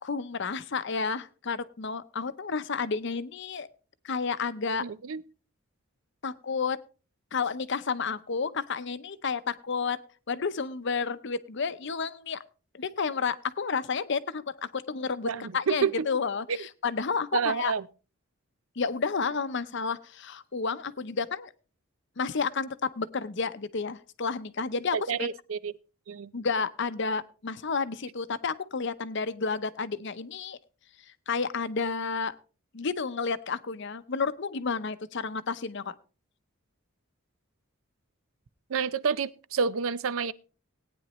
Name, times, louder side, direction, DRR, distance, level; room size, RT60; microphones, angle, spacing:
voice 1, 0.0-3.7 4.0-4.9 6.2-6.8 7.3-10.0 10.3-12.4 12.7-17.7 18.8-21.5 22.2-25.3 26.3-30.6 31.3-32.3 32.7-35.9, left 5 dB, 60° left, 0.7 m, -31 dB
voice 2, 4.8-5.2 15.3-16.1 16.5-16.6 17.3-17.8 24.9-25.7 26.1-26.3 38.7-40.3, right 6 dB, 75° right, 0.5 m, -29 dB
18.0 x 9.5 x 3.0 m
head